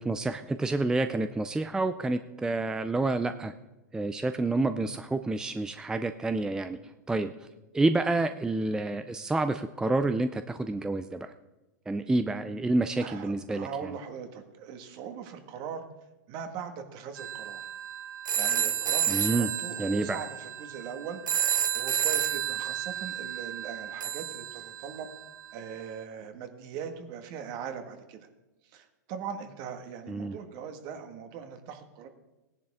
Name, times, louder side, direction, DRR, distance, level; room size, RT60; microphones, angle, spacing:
voice 1, 0.0-3.5 3.9-6.8 7.1-7.5 7.7-11.3 11.9-13.9 19.1-19.5 19.8-20.2 30.1-30.4, right 2 dB, 5° right, 10 dB, 0.4 m, -28 dB
voice 2, 13.0-15.9 16.3-17.6 18.3-21.2 21.7-25.1 25.5-28.3 28.7-32.1, right 7 dB, 45° right, 7 dB, 1.7 m, -40 dB
sound 1, 17.2-25.2, right 9 dB, 85° right, 1.2 m, -31 dB
17.0 x 10.5 x 3.6 m, 1.1 s
hypercardioid pair, 125°, 10 cm